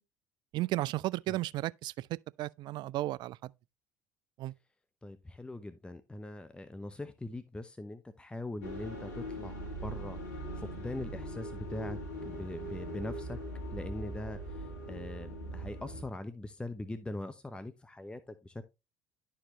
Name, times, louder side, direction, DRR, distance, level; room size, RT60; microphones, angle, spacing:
voice 1, 0.5-3.5 4.4-4.5, right 17 dB, 55° right, 0.4 m, -34 dB
voice 2, 5.0-12.0 12.2-13.4 13.7-18.6, left 2 dB, 10° left, 0.8 m, -42 dB
sound 1, 8.6-16.0, right 1 dB, 85° left, 1.9 m, -41 dB
11.5 x 4.7 x 3.0 m
hypercardioid pair, 70°, 9 cm